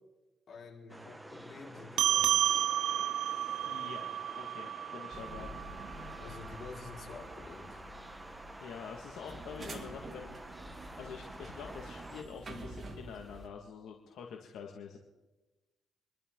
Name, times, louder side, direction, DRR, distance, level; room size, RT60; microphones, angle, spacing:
voice 1, 0.5-2.6 6.2-7.8, left 4 dB, 50° left, -2 dB, 4.6 m, -49 dB
sound 1, 0.9-12.2, right 1 dB, 10° right, 1.1 m, -49 dB
sound 2, 2.0-6.8, right 11 dB, 75° right, 0.5 m, -32 dB
voice 2, 3.6-4.1 4.4-5.5 6.0-6.2 8.6-10.4 11.0-15.0, left 7 dB, 75° left, 1 dB, 1.8 m, -46 dB
sound 3, 5.1-13.5, right 1 dB, 35° right, 2.3 m, -48 dB
26.0 x 12.5 x 3.8 m, 1.1 s
cardioid pair, 90°, 0 cm